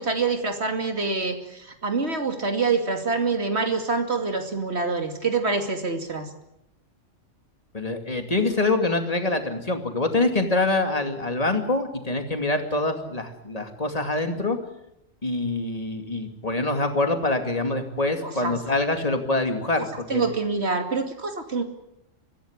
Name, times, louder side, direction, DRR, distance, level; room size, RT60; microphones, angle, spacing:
voice 1, 0.0-6.3 18.2-18.6 19.8-19.9 20.1-21.6, right 4 dB, 55° right, 6 dB, 2.9 m, -26 dB
voice 2, 7.7-14.6 15.2-20.2, left 2 dB, 30° left, 6 dB, 2.6 m, -25 dB
24.5 x 16.0 x 9.8 m, 0.84 s
omnidirectional pair, 1.3 m